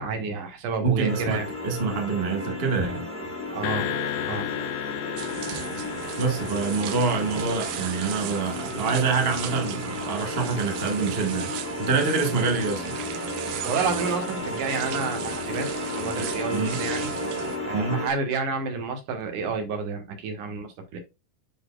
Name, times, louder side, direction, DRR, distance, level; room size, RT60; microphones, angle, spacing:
voice 1, 0.0-1.5 3.5-3.9 4.3-4.5 13.6-15.7 16.0-17.1 17.7-21.0, right 4 dB, 75° right, 2.9 m, -30 dB
voice 2, 0.8-3.0 6.2-13.0 16.5-16.8 17.7-18.1, right 4 dB, 50° right, 0.7 m, -26 dB
sound 1, 1.1-18.1, left 2 dB, 15° left, 1.9 m, -33 dB
sound 2, 3.6-8.1, left 13 dB, 85° left, 1.6 m, -34 dB
sound 3, 5.2-17.6, right 11 dB, 90° right, 2.4 m, -37 dB
10.5 x 4.1 x 2.3 m
omnidirectional pair, 3.7 m